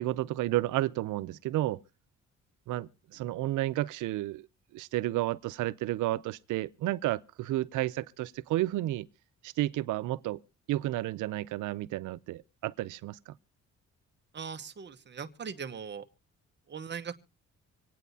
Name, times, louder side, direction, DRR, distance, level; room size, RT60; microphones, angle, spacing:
voice 1, 0.0-1.8 2.7-4.5 4.7-9.1 9.4-10.4 10.7-13.3, right 16 dB, 85° right, 0.6 m, -31 dB
voice 2, 14.3-16.0 16.7-17.1, right 6 dB, 35° right, 1.1 m, -39 dB
26.0 x 9.2 x 2.7 m
cardioid pair, 90°, 30 cm